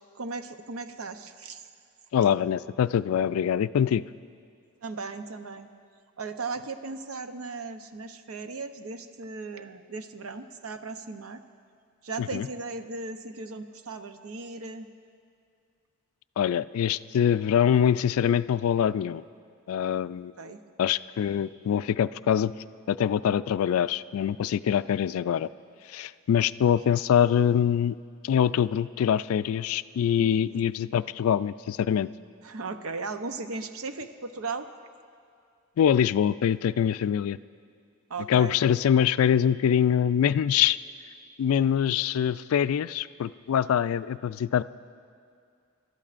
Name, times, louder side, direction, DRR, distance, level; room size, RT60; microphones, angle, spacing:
voice 1, 0.1-1.6 4.8-5.7 6.2-11.4 12.0-14.9 20.4-20.6 30.2-30.6 32.4-34.7 38.1-38.5, right 3 dB, 75° right, 8 dB, 0.7 m, -37 dB
voice 2, 2.1-4.0 12.2-12.5 16.4-19.2 19.7-20.3 20.8-22.5 22.9-25.5 25.9-27.9 28.2-32.1 35.8-37.4 38.3-40.8 41.4-44.6, left 9 dB, 70° left, 16 dB, 0.3 m, -24 dB
27.0 x 13.0 x 2.5 m, 2.3 s
head